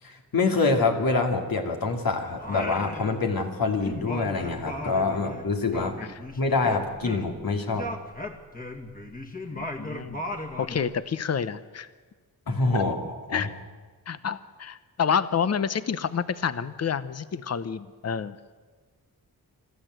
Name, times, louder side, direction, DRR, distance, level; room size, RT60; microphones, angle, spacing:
voice 1, 0.0-6.0 6.4-7.9 12.5-13.5, left 3 dB, 65° left, 3 dB, 2.7 m, -26 dB
Singing, 2.4-3.5 3.8-7.4 7.7-11.0, left 1 dB, 25° left, 2.1 m, -36 dB
voice 2, 9.5-10.2 10.6-11.9 12.7-12.8 13.3-13.5 14.1-18.4, left 7 dB, 45° left, 14 dB, 0.8 m, -28 dB
25.0 x 13.5 x 7.9 m, 1.4 s
cardioid pair, 80°, 37 cm